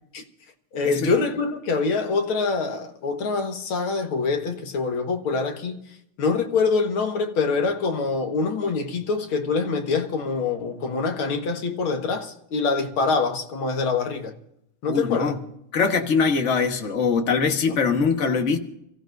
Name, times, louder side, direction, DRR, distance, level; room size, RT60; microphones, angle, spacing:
voice 1, 0.7-5.8 6.2-14.3 14.8-15.3 17.7-17.8, left 4 dB, 70° left, 2.3 m, -25 dB
voice 2, 14.9-15.4 15.7-18.6, left 5 dB, 35° left, 1.5 m, -22 dB
29.5 x 15.5 x 2.6 m
omnidirectional pair, 2.4 m